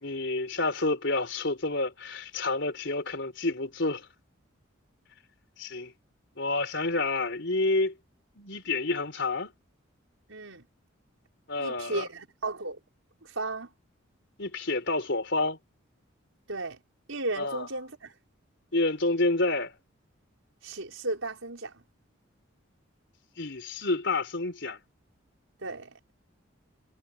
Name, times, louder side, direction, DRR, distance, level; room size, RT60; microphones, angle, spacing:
voice 1, 0.0-4.1 5.6-5.9 6.4-7.9 8.4-9.5 11.5-12.0 14.4-15.6 17.4-17.7 18.7-19.7 23.4-24.8, left 2 dB, 60° left, 4.5 m, -29 dB
voice 2, 10.3-10.6 11.6-12.8 13.2-13.7 16.5-16.8 17.1-18.1 20.6-21.8 25.6-26.0, right 2 dB, 80° right, 5.4 m, -35 dB
head